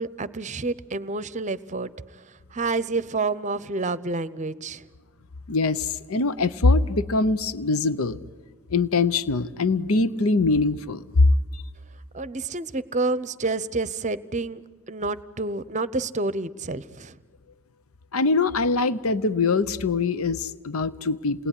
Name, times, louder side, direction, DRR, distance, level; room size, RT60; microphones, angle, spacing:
voice 1, 0.0-1.9 2.2-2.3 2.5-4.8 12.1-14.6 14.9-17.2, right 3 dB, 35° right, 16 dB, 0.7 m, -29 dB
voice 2, 5.5-8.2 8.7-11.3 11.5-11.6 18.1-21.5, left 3 dB, 75° left, 15 dB, 0.8 m, -23 dB
28.5 x 20.0 x 9.9 m, 1.5 s
head